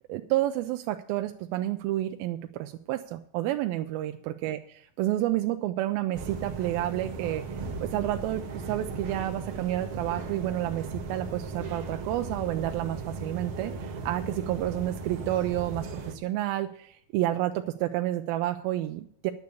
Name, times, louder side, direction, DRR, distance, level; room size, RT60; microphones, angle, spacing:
voice 1, 0.1-7.4 7.8-19.3, right 14 dB, 90° right, 6 dB, 2.4 m, -30 dB
sound 1, 6.1-16.1, right 3 dB, 55° right, 1.6 m, -37 dB
10.5 x 6.9 x 8.1 m, 0.65 s
omnidirectional pair, 4.1 m